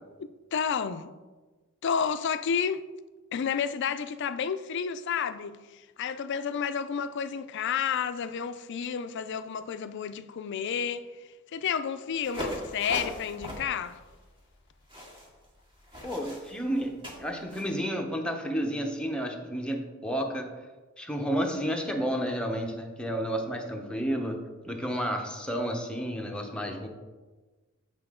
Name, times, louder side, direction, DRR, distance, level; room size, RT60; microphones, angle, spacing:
voice 1, 0.5-1.1 1.8-2.8 3.3-11.1 11.5-14.0, left 7 dB, 60° left, 0.4 m, -31 dB
sound 1, 12.2-17.7, equal, 25° right, 1.8 m, -40 dB
voice 2, 16.0-20.5 21.0-24.4 24.6-26.9, equal, 5° left, 0.8 m, -31 dB
8.1 x 5.6 x 3.7 m
head